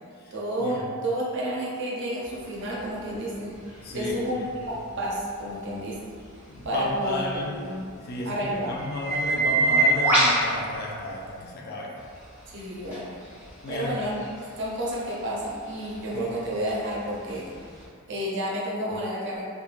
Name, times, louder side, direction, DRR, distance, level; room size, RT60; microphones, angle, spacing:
voice 1, 0.3-3.5 3.9-6.0 6.6-7.8 8.3-8.8 12.5-13.2 13.7-17.6 18.1-19.4, right 1 dB, 55° right, -4 dB, 0.6 m, -30 dB
sound 1, 2.3-11.5 12.0-17.8, right 2 dB, 10° right, 0.8 m, -29 dB
voice 2, 3.8-4.2 6.5-7.6 8.0-8.4 8.6-11.9 13.6-13.9 16.1-16.3, left 1 dB, 45° left, -2 dB, 0.4 m, -33 dB
3.1 x 2.1 x 2.4 m, 2.1 s
head